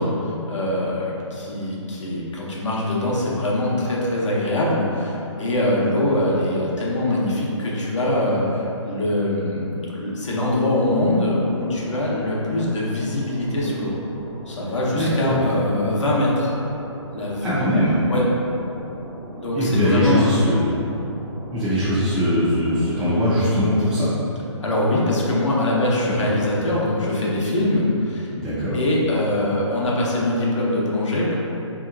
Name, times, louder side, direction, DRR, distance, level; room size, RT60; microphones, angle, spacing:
voice 1, 0.0-13.9 14.5-16.5 17.1-17.6 18.1-18.2 19.3-20.3 24.6-28.3 28.7-31.3, left 1 dB, 70° left, -5 dB, 0.9 m, -23 dB
sound 1, 10.4-23.6, right 1 dB, 55° right, 0.8 m, -39 dB
voice 2, 14.9-15.4 17.4-18.0 19.5-20.8 21.5-24.1 26.1-26.3 28.3-28.8, left 1 dB, 5° right, -16 dB, 0.5 m, -21 dB
3.5 x 2.8 x 2.4 m, 2.8 s
hypercardioid pair, 165°, 16 cm